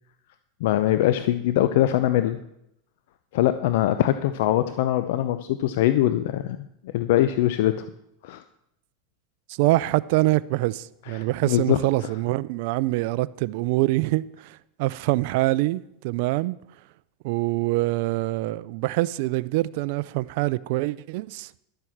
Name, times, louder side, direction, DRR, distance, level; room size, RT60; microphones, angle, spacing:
voice 1, 0.6-2.4 3.3-7.9 8.2-8.4 11.1-12.1, left 13 dB, 70° left, 0.6 m, -23 dB
voice 2, 9.5-16.6 17.2-21.5, right 19 dB, 65° right, 0.4 m, -25 dB
11.5 x 7.8 x 7.2 m
supercardioid pair, 120°, 0 cm